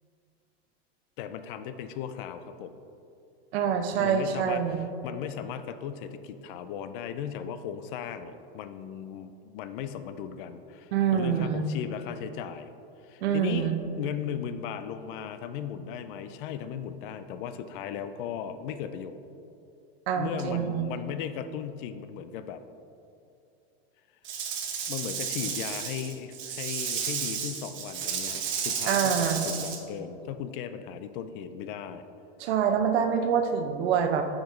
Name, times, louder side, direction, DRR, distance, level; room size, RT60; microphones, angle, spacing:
voice 1, 1.2-2.8 4.0-12.7 13.0-13.7 13.9-19.2 20.2-22.6 24.9-32.0, left 8 dB, 55° left, 10 dB, 0.5 m, -37 dB
voice 2, 3.5-4.8 10.9-11.7 13.2-13.8 20.1-20.9 28.9-29.5 32.4-34.2, right 7 dB, 75° right, 6 dB, 0.8 m, -26 dB
Rattle / Rattle (instrument), 24.2-29.8, right 7 dB, 35° right, 1.0 m, -32 dB
8.9 x 5.1 x 3.1 m, 2.7 s
supercardioid pair, 135°, 32 cm